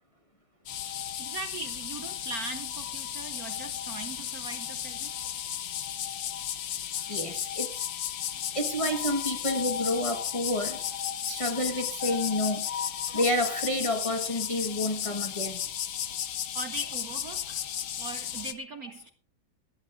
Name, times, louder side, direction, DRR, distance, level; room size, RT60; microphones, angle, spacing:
sound 1, 0.7-18.5, left 10 dB, 60° left, 1.2 m, -34 dB
voice 1, 1.2-5.1 16.5-17.6 18.0-19.1, right 3 dB, 65° right, 0.9 m, -40 dB
voice 2, 7.1-7.8 8.5-10.8 11.2-12.7 13.1-15.6, left 1 dB, 20° left, 1.1 m, -29 dB
19.5 x 14.0 x 2.5 m
omnidirectional pair, 2.3 m